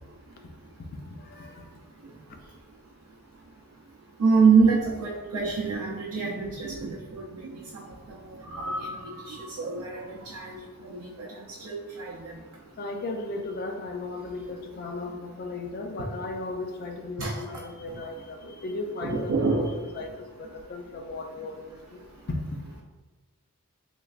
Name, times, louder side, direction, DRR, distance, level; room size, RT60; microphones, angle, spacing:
voice 1, 1.2-1.6 12.8-22.0, left 3 dB, 45° left, 5 dB, 0.4 m, -36 dB
voice 2, 4.2-7.3 7.5-10.6 10.8-12.4 17.2-17.4 19.0-19.8, right 5 dB, 90° right, -3 dB, 0.4 m, -26 dB
3.2 x 3.1 x 2.4 m, 1.2 s
head